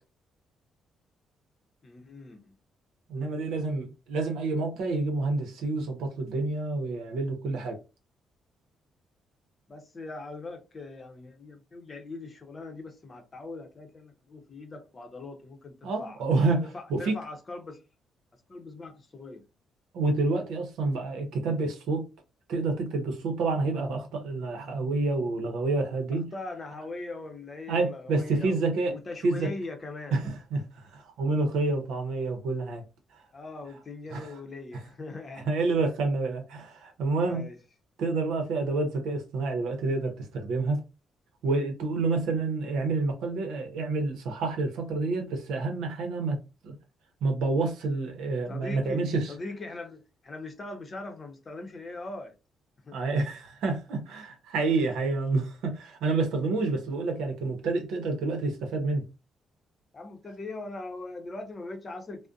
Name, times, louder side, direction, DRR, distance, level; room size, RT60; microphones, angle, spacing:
voice 1, 1.8-2.5 9.7-16.2 16.6-17.8 18.5-19.4 26.3-28.6 28.9-30.2 33.3-35.5 37.2-37.6 48.5-52.3 52.9-53.0 59.9-62.3, left 2 dB, 35° left, 0.7 m, -41 dB
voice 2, 3.1-7.8 15.8-17.2 19.9-22.1 22.5-26.3 27.7-29.0 29.2-29.5 30.1-32.8 34.1-34.4 34.7-34.8 35.4-37.5 38.0-40.8 41.4-46.7 47.2-49.3 52.9-59.0, right 3 dB, 85° right, 0.7 m, -28 dB
2.5 x 2.1 x 2.4 m
cardioid pair, 90°, 0 cm